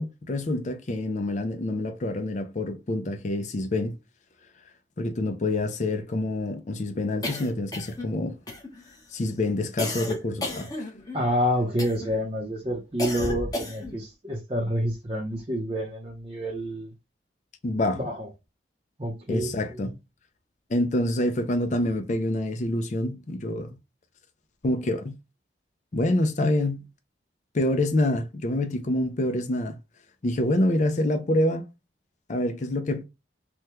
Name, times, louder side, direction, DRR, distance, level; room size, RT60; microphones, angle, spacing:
voice 1, 0.0-3.9 5.0-8.4 9.1-10.7 17.6-18.0 19.3-19.9 20.7-23.8 24.6-25.1 25.9-26.8 27.5-29.8 30.2-31.6 32.3-33.0, left 1 dB, 40° left, 0.4 m, -26 dB
sound 1, 7.2-8.1 8.5-9.0 9.8-11.3 11.8-12.2 13.0-14.0, left 1 dB, 20° left, 0.9 m, -33 dB
voice 2, 11.1-16.9 17.9-18.3 19.0-19.9, equal, 30° right, 0.7 m, -28 dB
3.4 x 2.2 x 2.9 m
head